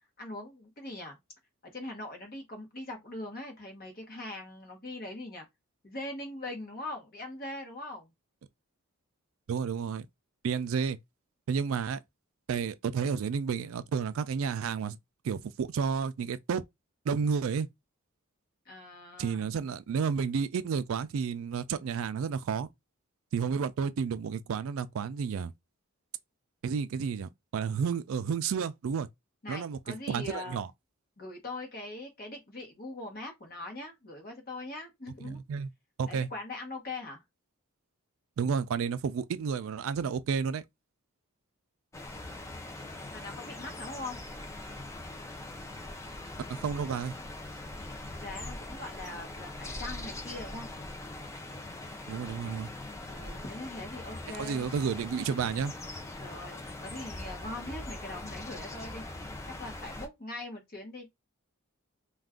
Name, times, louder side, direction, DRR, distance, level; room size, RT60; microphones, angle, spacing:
voice 1, 0.2-1.2 1.7-5.5 5.8-8.1 18.7-19.5 29.4-30.6 31.2-35.4 36.1-37.2 43.1-44.2 48.0-50.7 53.1-54.7 56.2-59.3 59.6-61.1, left 2 dB, 40° left, 1.0 m, -41 dB
voice 2, 9.5-10.1 10.4-11.0 11.5-12.0 12.5-15.0 15.2-16.6 17.1-17.7 19.2-22.7 23.3-25.5 26.6-29.1 29.5-30.7 35.2-35.7 36.0-36.3 38.4-40.6 46.5-47.2 52.1-52.7 54.4-55.7, right 6 dB, 70° right, 0.3 m, -31 dB
sound 1, 41.9-60.1, left 2 dB, 15° left, 0.4 m, -42 dB
2.4 x 2.3 x 3.5 m
head